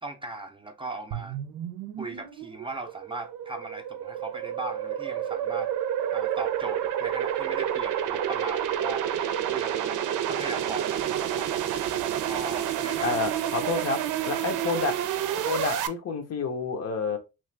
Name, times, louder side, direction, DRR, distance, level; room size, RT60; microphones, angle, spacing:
voice 1, 0.0-1.4 2.0-5.7 6.1-9.1 9.5-10.0 10.3-11.6 12.3-13.2 13.6-13.7 14.3-14.4, right 2 dB, 15° right, 0.4 m, -38 dB
sound 1, 1.1-15.9, right 10 dB, 80° right, 0.5 m, -29 dB
voice 2, 13.0-15.0 15.5-17.2, left 4 dB, 55° left, 0.8 m, -29 dB
3.1 x 2.4 x 3.2 m
cardioid pair, 90°, 30 cm